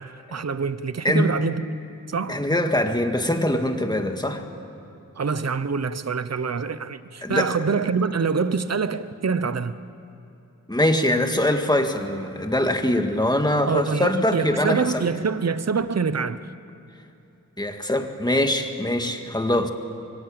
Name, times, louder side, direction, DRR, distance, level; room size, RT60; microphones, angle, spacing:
voice 1, 0.0-1.6 2.1-2.4 5.2-9.7 13.7-16.4, right 5 dB, 50° right, 13 dB, 0.9 m, -25 dB
voice 2, 1.0-1.4 2.3-4.4 7.2-7.5 10.7-15.0 17.6-19.7, left 1 dB, 10° left, 5 dB, 2.0 m, -23 dB
25.0 x 23.5 x 8.9 m, 2.9 s
wide cardioid pair, 100°, 33 cm